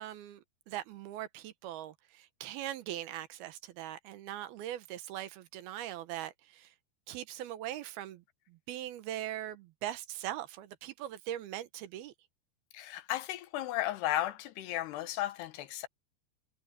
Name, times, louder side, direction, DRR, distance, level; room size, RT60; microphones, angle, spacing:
voice 1, 0.0-6.7 7.1-12.1, right 12 dB, 75° right, 2.8 m, -41 dB
voice 2, 12.7-15.9, left 14 dB, 85° left, 3.2 m, -34 dB
omnidirectional pair, 4.6 m